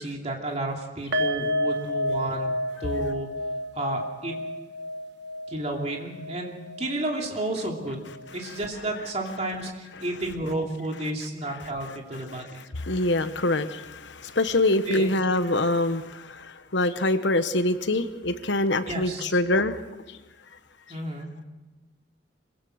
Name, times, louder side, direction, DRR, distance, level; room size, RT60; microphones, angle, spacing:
voice 1, 0.0-2.5 2.8-3.3 3.7-4.3 5.5-12.6 14.9-15.1 18.8-19.4 20.9-21.3, right 1 dB, 35° right, 1 dB, 2.8 m, -32 dB
sound 1, 1.1-8.3 8.6-8.8 9.2-9.3, left 1 dB, 60° right, 1.4 m, -31 dB
voice 2, 12.7-19.8 20.1-20.2, left 2 dB, 65° left, 10 dB, 1.2 m, -25 dB
25.5 x 16.5 x 6.5 m, 1.2 s
head